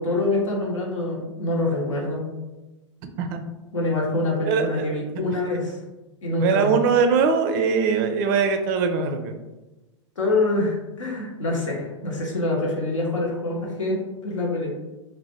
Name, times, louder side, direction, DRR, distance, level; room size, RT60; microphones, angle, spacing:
voice 1, 0.0-2.2 3.7-5.8 6.2-6.7 10.2-14.7, left 2 dB, 75° left, -2 dB, 0.8 m, -25 dB
voice 2, 4.5-4.8 6.4-9.3, right 5 dB, 40° right, 7 dB, 0.4 m, -21 dB
2.7 x 2.1 x 3.2 m, 1.1 s
figure-of-eight pair, 95°, 16 cm